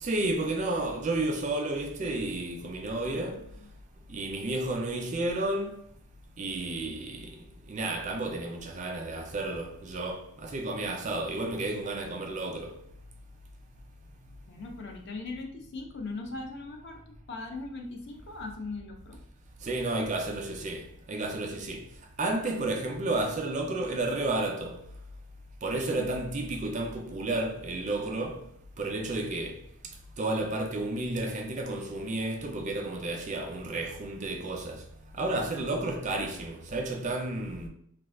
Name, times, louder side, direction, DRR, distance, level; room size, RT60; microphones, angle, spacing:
voice 1, 0.0-3.4 4.1-5.7 6.4-7.2 7.7-12.7 19.6-20.8 21.1-21.8 22.2-24.8 25.6-28.4 28.8-29.5 30.2-34.8 35.2-37.7, right 2 dB, 35° right, 0.4 m, -31 dB
voice 2, 3.0-3.4 14.5-17.0 17.3-19.2 25.9-26.1, left 3 dB, 50° left, 0.5 m, -39 dB
2.4 x 2.3 x 3.5 m
head